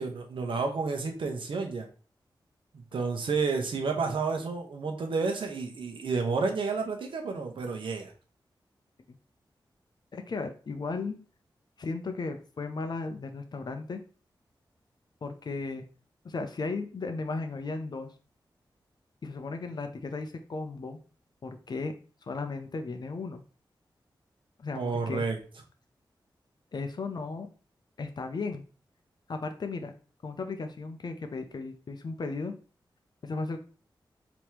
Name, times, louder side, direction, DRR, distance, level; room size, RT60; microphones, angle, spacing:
voice 1, 0.0-1.9 2.7-8.1 24.7-25.4, right 4 dB, 90° right, 3 dB, 1.0 m, -30 dB
voice 2, 10.1-11.2 11.8-14.0 15.2-15.8 16.2-18.1 19.2-21.0 21.4-21.9 22.2-23.4 24.6-25.2 26.7-27.5 28.0-28.6 29.3-29.9 30.2-32.5 33.2-33.6, left 3 dB, 55° left, 7 dB, 0.7 m, -35 dB
3.5 x 3.0 x 4.5 m, 0.38 s
wide cardioid pair, 110°, 8 cm